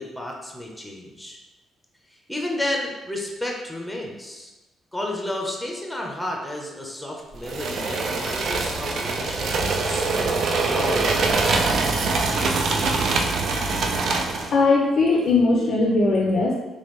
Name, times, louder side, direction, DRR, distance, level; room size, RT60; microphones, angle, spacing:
voice 1, 0.0-1.4 2.3-4.5 4.9-10.4 10.6-11.6, left 1 dB, 5° left, 0 dB, 0.5 m, -31 dB
sound 1, 7.4-14.6, right 3 dB, 65° right, 0.3 m, -23 dB
voice 2, 14.5-16.5, left 3 dB, 60° left, 0 dB, 0.4 m, -19 dB
3.4 x 2.2 x 3.1 m, 1.1 s
cardioid pair, 90°, 0 cm